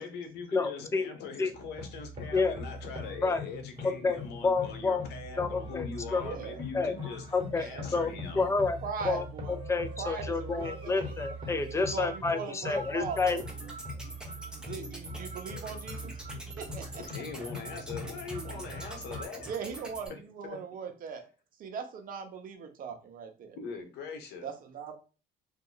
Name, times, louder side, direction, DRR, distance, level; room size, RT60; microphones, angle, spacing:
voice 1, 0.0-7.3 7.5-8.5 17.0-19.5 20.1-20.2 23.6-24.5, left 5 dB, 80° left, 6 dB, 1.0 m, -42 dB
voice 2, 0.5-1.1 1.4-1.5 2.3-2.6 3.2-3.4 3.8-5.0 5.4-6.2 6.7-6.9 7.3-7.7 7.9-8.8 9.0-13.4, left 4 dB, 15° left, 9 dB, 0.5 m, -29 dB
sound 1, 1.5-19.2, left 1 dB, 30° right, 1.3 m, -41 dB
sound 2, 6.1-8.9 9.2-9.5 10.1-10.6, right 1 dB, 55° left, 1.5 m, -52 dB
voice 3, 6.2-6.6 7.6-7.9 8.8-9.6 10.0-11.1 11.7-13.4 14.5-16.2 16.6-17.0 17.7-17.8 19.5-21.2 21.6-23.6 24.4-25.0, right 5 dB, 55° right, 5 dB, 0.9 m, -39 dB
sound 3, 13.2-20.1, right 1 dB, 5° right, 1.0 m, -45 dB
2.9 x 2.8 x 4.0 m, 0.34 s
cardioid pair, 110°, 17 cm